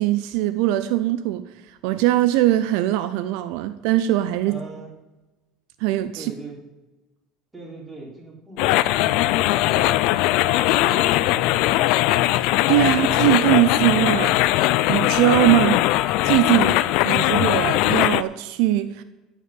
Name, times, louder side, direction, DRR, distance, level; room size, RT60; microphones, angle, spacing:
voice 1, 0.0-4.6 5.8-6.3 12.3-14.4 14.9-15.8 16.2-16.8 17.1-19.0, right 14 dB, 70° right, 0.6 m, -21 dB
voice 2, 4.5-4.9 6.1-6.6 7.5-11.8, right 3 dB, 15° right, 3.6 m, -40 dB
sound 1, 8.6-18.2, left 16 dB, 65° left, 0.5 m, -20 dB
15.0 x 5.7 x 7.8 m
cardioid pair, 145°, 0 cm